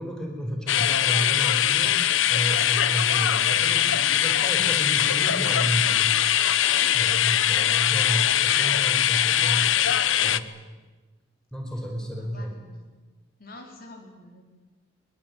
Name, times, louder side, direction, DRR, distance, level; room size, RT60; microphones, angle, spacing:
voice 1, 0.0-2.0 2.3-6.2 6.9-9.7 10.2-10.5 11.5-12.6, equal, 5° left, 1 dB, 4.8 m, -32 dB
sound 1, 0.7-10.4, left 11 dB, 75° left, 0.9 m, -22 dB
voice 2, 7.6-8.1 12.2-12.9 13.4-14.4, left 2 dB, 45° left, 3 dB, 3.8 m, -47 dB
23.0 x 22.5 x 9.0 m, 1.2 s
head